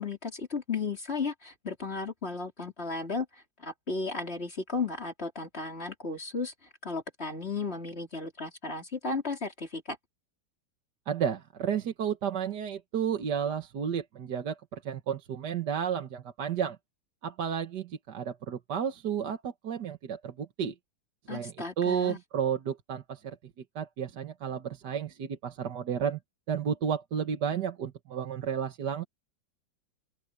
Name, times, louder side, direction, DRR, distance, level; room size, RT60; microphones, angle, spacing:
voice 1, 0.0-3.3 3.6-6.5 6.8-10.0 21.3-22.2, left 4 dB, 35° left, 3.7 m, -34 dB
voice 2, 11.1-16.8 17.2-20.8 21.3-23.4 23.8-26.2 26.5-29.1, right 8 dB, 65° right, 1.9 m, -32 dB
open air
omnidirectional pair, 2.0 m